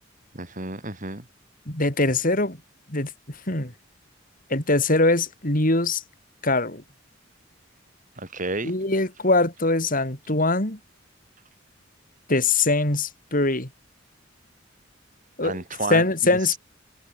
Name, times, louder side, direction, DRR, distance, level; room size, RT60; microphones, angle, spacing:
voice 1, 0.3-1.2 8.2-8.7 15.4-16.6, right 2 dB, 40° right, 4.6 m, -32 dB
voice 2, 1.7-2.6 2.9-3.1 3.5-3.7 4.5-6.0 6.4-6.8 8.6-10.8 12.3-13.7 15.4-15.6 15.9-16.6, left 2 dB, 45° left, 5.1 m, -22 dB
head